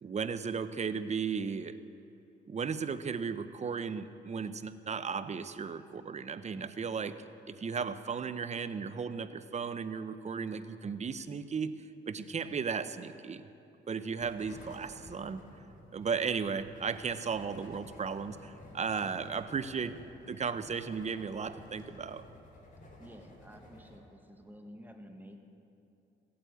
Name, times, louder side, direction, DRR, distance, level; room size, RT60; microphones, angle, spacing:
voice 1, 0.0-1.8 2.4-7.2 7.5-13.4 13.9-15.4 15.9-20.0 20.3-22.2, right 6 dB, 35° right, 12 dB, 0.7 m, -35 dB
sound 1, 14.2-24.0, left 1 dB, 40° left, 3.8 m, -53 dB
voice 2, 23.0-25.4, equal, 10° right, 4 dB, 1.6 m, -51 dB
16.5 x 8.7 x 8.2 m, 2.7 s
cardioid pair, 90°, 20 cm